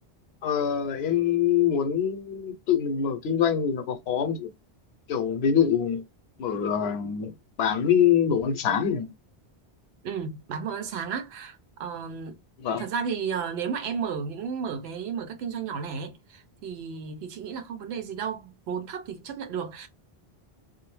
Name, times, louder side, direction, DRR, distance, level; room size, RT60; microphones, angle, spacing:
voice 1, 0.4-4.5 5.1-6.1 6.4-7.3 7.6-9.1 12.6-12.8, left 8 dB, 75° left, 0.8 m, -24 dB
voice 2, 10.0-12.4 12.7-19.9, right 6 dB, 90° right, 0.9 m, -33 dB
2.3 x 2.0 x 3.1 m
omnidirectional pair, 1.1 m